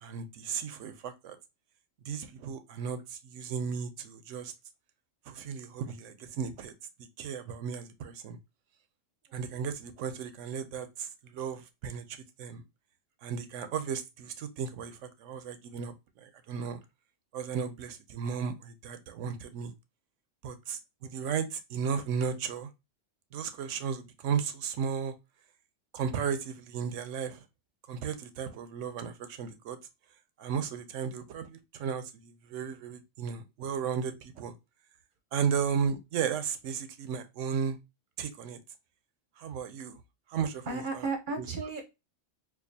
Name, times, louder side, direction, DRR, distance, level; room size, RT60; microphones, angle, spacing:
voice 1, 0.0-1.4 2.1-4.5 5.3-6.7 7.2-8.4 9.3-12.6 13.2-16.8 17.3-19.7 20.4-22.7 23.3-25.1 25.9-27.4 27.9-29.8 30.4-34.5 35.3-37.8 38.2-38.6 39.4-40.0 40.3-40.7 41.4-41.5, right 7 dB, 75° right, 0.9 m, -35 dB
voice 2, 40.7-41.8, right 3 dB, 45° right, 0.8 m, -34 dB
4.6 x 2.4 x 2.7 m
omnidirectional pair, 1.3 m